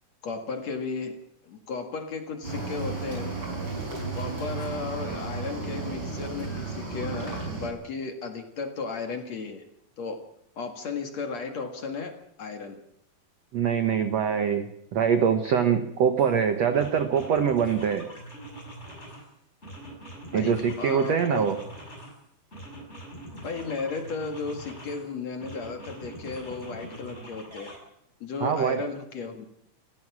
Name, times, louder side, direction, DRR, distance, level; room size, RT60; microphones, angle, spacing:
voice 1, 0.2-1.2 1.4-3.4 4.1-9.6 10.0-10.2 10.6-12.1 12.4-12.8 20.3-21.6 23.4-27.7 28.2-29.5, left 4 dB, 50° left, 5 dB, 2.5 m, -34 dB
Cricket / Waves surf, 2.4-7.7, right 3 dB, 30° right, 6.9 m, -33 dB
voice 2, 13.5-18.1 20.3-21.6 28.4-28.8, right 7 dB, 75° right, 8 dB, 1.5 m, -24 dB
sound 1, 16.2-16.3 16.7-19.3 19.6-22.2 22.5-25.0 25.4-27.8, right 1 dB, 15° left, 6.6 m, -43 dB
28.5 x 15.0 x 6.2 m, 0.76 s
omnidirectional pair, 4.8 m